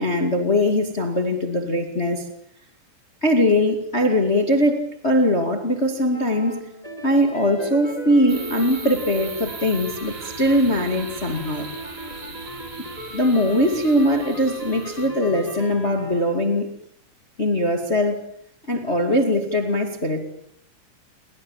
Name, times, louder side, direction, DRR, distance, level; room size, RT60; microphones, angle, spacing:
voice 1, 0.0-2.2 3.2-6.6 7.0-11.7 13.1-16.7 17.4-18.2 18.7-20.2, left 1 dB, 30° left, 6 dB, 1.1 m, -21 dB
sound 1, 6.1-16.2, equal, 10° left, 2.9 m, -37 dB
sound 2, 8.3-15.1, right 5 dB, 50° right, 5.9 m, -39 dB
30.0 x 23.5 x 7.3 m, 0.67 s
omnidirectional pair, 5.6 m